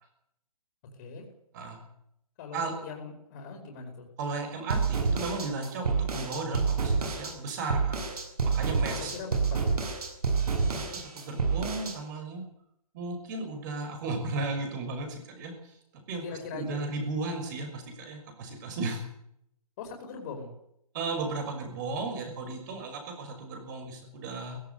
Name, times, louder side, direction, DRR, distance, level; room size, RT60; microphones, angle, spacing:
voice 1, 2.4-4.0 8.9-9.7 16.2-16.8 19.8-20.5, left 5 dB, 30° left, 2 dB, 5.0 m, -41 dB
voice 2, 4.2-8.0 8.4-9.1 10.7-12.4 12.9-16.2 16.5-19.0 20.9-24.6, right 3 dB, 30° right, 5 dB, 6.2 m, -35 dB
sound 1, 4.7-12.0, right 4 dB, 85° right, 7.6 m, -28 dB
18.5 x 17.0 x 9.6 m, 0.75 s
hypercardioid pair, 165°, 19 cm